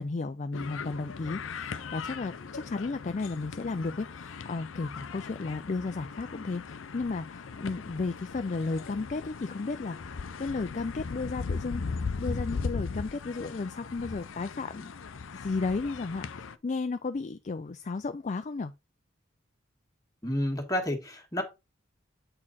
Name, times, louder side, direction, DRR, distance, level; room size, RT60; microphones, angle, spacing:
voice 1, 0.0-14.9 15.3-18.7, left 3 dB, 35° left, 0.4 m, -34 dB
sound 1, 0.5-16.6, left 4 dB, 85° left, 0.6 m, -38 dB
voice 2, 20.2-21.4, left 1 dB, 20° left, 1.7 m, -30 dB
8.7 x 4.3 x 4.1 m
head